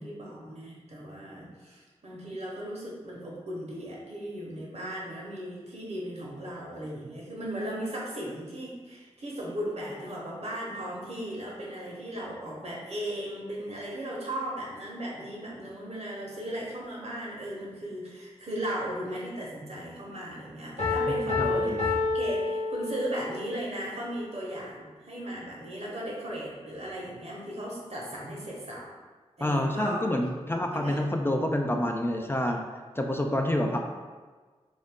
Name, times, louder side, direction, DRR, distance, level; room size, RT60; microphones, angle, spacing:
voice 1, 0.0-28.9 29.4-30.3 30.7-31.0, right 1 dB, 60° right, -4 dB, 1.0 m, -37 dB
Piano, 20.8-23.4, left 3 dB, 70° left, 0.9 m, -28 dB
voice 2, 21.4-21.8 29.4-32.6 33.0-33.8, left 1 dB, 20° left, 2 dB, 0.3 m, -28 dB
2.6 x 2.5 x 3.5 m, 1.4 s
cardioid pair, 45°, 12 cm